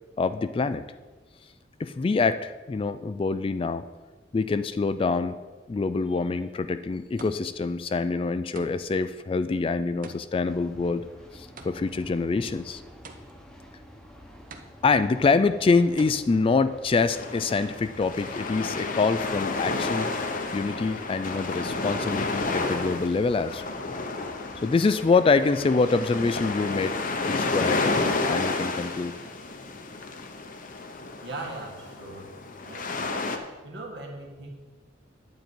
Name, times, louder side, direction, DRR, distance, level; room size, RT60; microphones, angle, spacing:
voice 1, 0.2-0.8 1.8-3.8 4.3-5.4 5.7-11.0 11.3-12.8 14.8-20.1 20.5-23.6 24.6-27.0 27.3-27.9 28.3-29.1, left 4 dB, 30° left, 12 dB, 0.3 m, -25 dB
sound 1, 6.5-6.6 7.2-7.7 8.5-9.1 10.0-12.1 13.0-13.6 14.5-15.1 16.0-16.1, right 3 dB, 45° right, 0.8 m, -46 dB
sound 2, 10.4-27.9, equal, 5° left, 1.1 m, -49 dB
sound 3, 17.1-33.4, left 3 dB, 45° left, 0.8 m, -31 dB
voice 2, 31.2-32.3 32.6-33.0 33.6-34.5, right 2 dB, 65° right, 0 dB, 1.9 m, -39 dB
9.4 x 9.1 x 4.5 m, 1.3 s
head